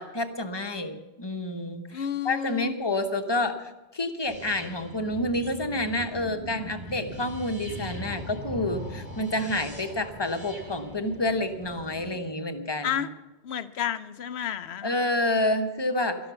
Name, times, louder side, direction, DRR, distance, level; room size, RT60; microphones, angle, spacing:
voice 1, 0.0-13.0 14.8-16.2, left 1 dB, 25° left, 7 dB, 1.0 m, -29 dB
voice 2, 1.9-2.7 12.8-13.1 13.4-14.9, left 8 dB, 90° left, 12 dB, 1.0 m, -31 dB
sound 1, 4.3-12.1, equal, 50° right, 3.9 m, -40 dB
12.5 x 12.0 x 6.9 m, 1.1 s
omnidirectional pair, 1.0 m